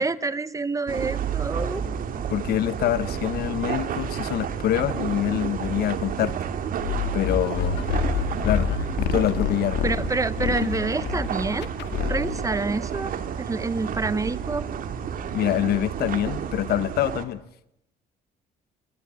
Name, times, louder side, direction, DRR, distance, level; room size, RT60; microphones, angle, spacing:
voice 1, 0.0-1.8 9.8-11.7 12.1-14.7, right 3 dB, 20° right, 1.1 m, -27 dB
sound 1, 0.9-17.2, right 8 dB, 55° right, 2.5 m, -31 dB
voice 2, 2.3-6.4 7.1-7.8 8.4-8.7 9.0-9.8 15.3-17.4, left 12 dB, 65° left, 1.3 m, -25 dB
sound 2, 6.8-12.5, left 8 dB, 85° left, 2.1 m, -28 dB
22.0 x 20.0 x 9.1 m
cardioid pair, 110°, 17 cm